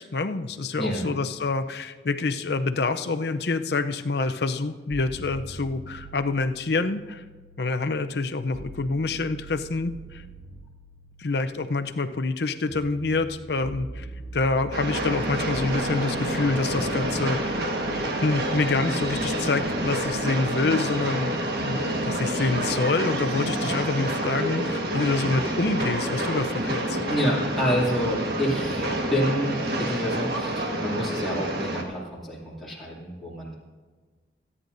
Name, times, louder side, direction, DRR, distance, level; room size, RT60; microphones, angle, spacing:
voice 1, 0.0-7.2 7.6-10.2 11.2-14.1 14.3-17.7 18.2-27.0, left 3 dB, 65° left, 9 dB, 0.6 m, -27 dB
voice 2, 0.7-1.1 27.1-33.6, equal, ahead, -8 dB, 2.5 m, -28 dB
sound 1, 4.9-22.9, right 3 dB, 35° right, 0.7 m, -44 dB
Train, 14.7-31.8, right 1 dB, 60° right, 1.5 m, -28 dB
26.5 x 9.9 x 2.6 m, 1.4 s
head